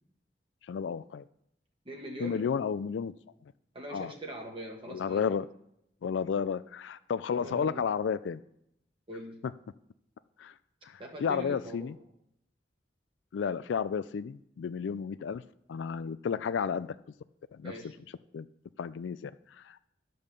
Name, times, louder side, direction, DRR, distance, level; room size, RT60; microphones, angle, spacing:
voice 1, 0.7-1.3 2.2-3.1 3.9-4.1 4.9-5.5 6.0-8.4 10.4-10.5 10.8-12.0 13.3-15.4 15.7-16.9 17.5-17.7 18.3-18.5 18.8-19.9, left 6 dB, 85° left, 15 dB, 0.4 m, -32 dB
voice 2, 1.8-2.5 3.7-5.3 7.4-7.8 9.1-9.4 11.0-11.9 17.6-17.9, right 1 dB, 30° right, 1 dB, 1.2 m, -42 dB
10.5 x 5.4 x 6.7 m, 0.77 s
head